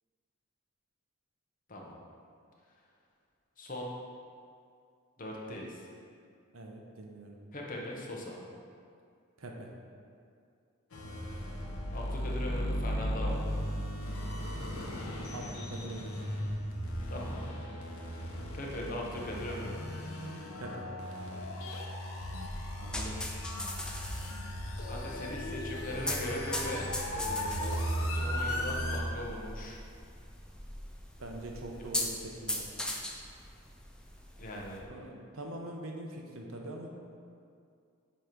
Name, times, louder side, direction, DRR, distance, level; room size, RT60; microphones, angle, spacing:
voice 1, 3.6-3.9 5.2-5.9 7.5-8.5 11.9-13.5 17.1-17.5 18.1-18.3 18.5-19.9 22.8-23.1 24.9-26.8 27.1-29.8 34.4-34.8, left 1 dB, 40° left, -2 dB, 0.9 m, -40 dB
voice 2, 6.5-7.4 9.4-9.7 15.3-16.2 20.6-20.9 31.2-32.7 34.9-36.9, right 1 dB, 70° right, 1 dB, 0.8 m, -43 dB
sound 1, 10.9-29.0, equal, 80° left, 0.8 m, -36 dB
sound 2, 22.4-34.8, left 1 dB, 5° left, 0.4 m, -40 dB
7.7 x 3.0 x 5.2 m, 2.3 s
head